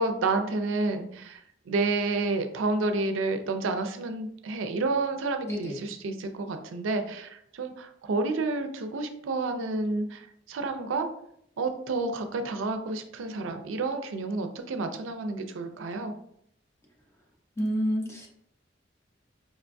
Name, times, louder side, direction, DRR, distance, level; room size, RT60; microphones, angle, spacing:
voice 1, 0.0-1.4 1.7-11.1 11.6-16.1, right 3 dB, 85° right, 7 dB, 0.4 m, -30 dB
voice 2, 5.5-5.8 17.6-18.3, equal, 15° left, -1 dB, 0.7 m, -29 dB
5.0 x 2.2 x 2.5 m, 0.71 s
head